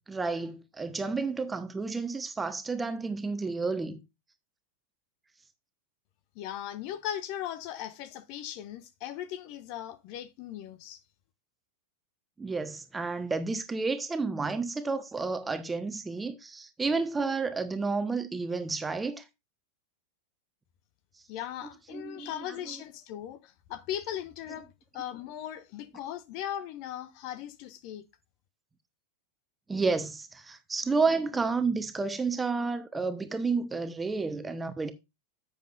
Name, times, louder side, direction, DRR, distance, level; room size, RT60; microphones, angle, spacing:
voice 1, 0.1-4.0 12.4-19.2 21.9-22.7 29.7-34.9, right 4 dB, 10° right, 1.1 m, -31 dB
voice 2, 6.3-11.0 21.3-24.7 24.9-28.1, left 11 dB, 45° left, 1.0 m, -38 dB
10.5 x 7.7 x 2.5 m
figure-of-eight pair, 90°, 0 cm